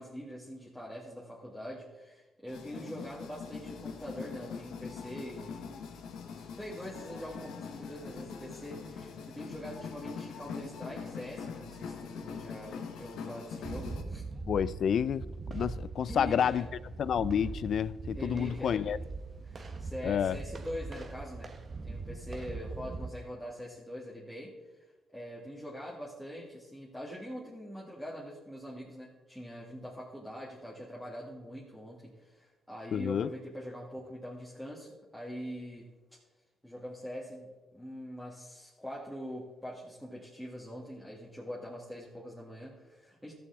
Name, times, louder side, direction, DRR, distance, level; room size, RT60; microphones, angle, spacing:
voice 1, 0.0-5.8 6.3-14.2 16.0-16.7 18.1-18.9 19.4-21.5 21.8-24.5 25.1-35.9 36.6-43.3, equal, ahead, 1.8 m, -43 dB
sound 1, 2.5-14.0, left 6 dB, 80° left, 1.0 m, -43 dB
sound 2, 13.6-23.1, right 3 dB, 40° right, 1.0 m, -41 dB
voice 2, 14.5-16.7 17.0-19.0 20.0-20.4 32.9-33.3, left 8 dB, 60° left, 0.3 m, -29 dB
14.0 x 6.9 x 3.6 m
cardioid pair, 90°, 0 cm